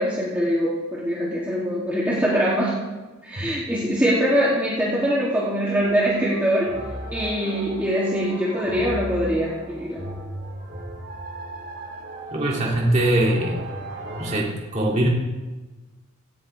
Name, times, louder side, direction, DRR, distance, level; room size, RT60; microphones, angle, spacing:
voice 1, 0.0-2.8 3.2-6.7 7.1-10.0, equal, 10° right, -8 dB, 2.4 m, -23 dB
sound 1, 5.8-14.4, right 1 dB, 50° right, 2.6 m, -36 dB
voice 2, 12.3-13.6 14.2-15.1, right 1 dB, 35° right, -3 dB, 2.4 m, -22 dB
17.5 x 15.5 x 3.3 m, 1.2 s
head